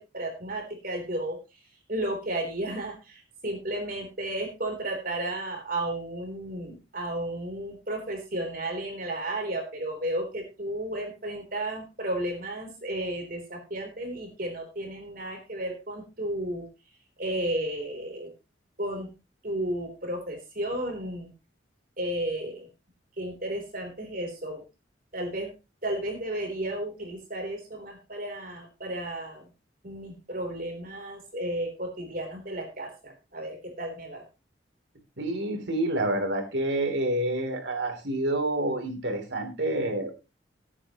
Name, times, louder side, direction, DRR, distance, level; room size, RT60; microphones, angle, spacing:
voice 1, 0.1-1.4 1.9-16.6 17.2-18.3 18.8-19.1 19.4-21.3 22.0-22.7 23.2-24.6 25.1-25.5 25.8-29.5 29.8-34.2, right 1 dB, 50° right, 3 dB, 3.7 m, -33 dB
voice 2, 35.2-40.1, right 1 dB, 75° right, 4 dB, 3.4 m, -28 dB
18.0 x 8.7 x 3.1 m, 0.28 s
head